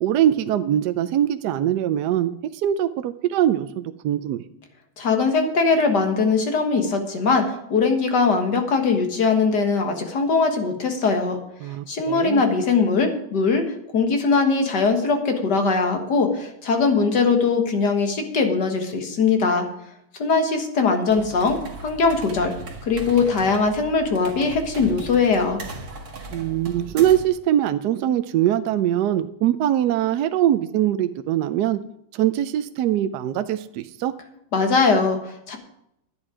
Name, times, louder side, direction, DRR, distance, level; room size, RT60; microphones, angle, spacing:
voice 1, 0.0-4.4 11.6-12.4 26.3-31.8 32.1-34.1, right 11 dB, 75° right, 10 dB, 1.0 m, -22 dB
voice 2, 5.0-11.4 11.9-13.7 13.9-19.7 20.2-22.5 22.8-25.6 34.5-35.6, left 4 dB, 55° left, 5 dB, 2.0 m, -21 dB
sound 1, 21.0-27.4, right 2 dB, 50° right, 2.0 m, -38 dB
11.5 x 9.8 x 4.9 m, 0.79 s
omnidirectional pair, 2.2 m